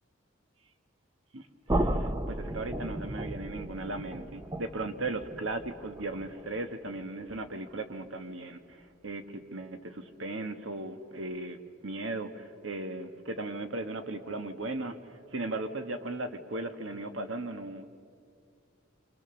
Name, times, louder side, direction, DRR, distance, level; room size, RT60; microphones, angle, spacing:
voice 1, 1.3-17.9, right 2 dB, 70° right, 8 dB, 1.5 m, -37 dB
sound 1, 1.7-7.6, right 1 dB, 15° right, 0.7 m, -35 dB
29.0 x 26.0 x 7.1 m, 2.3 s
head